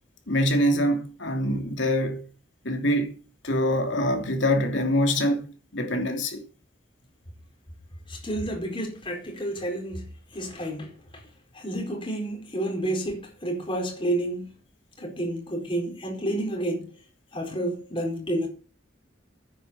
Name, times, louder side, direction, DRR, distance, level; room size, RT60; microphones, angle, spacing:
voice 1, 0.3-2.3 2.6-3.2 3.4-6.4, equal, 70° left, 3.0 m, -24 dB
voice 2, 8.1-11.2 11.5-14.5 15.0-17.0 17.3-18.5, right 1 dB, 25° left, 4.4 m, -30 dB
9.6 x 8.3 x 8.2 m
head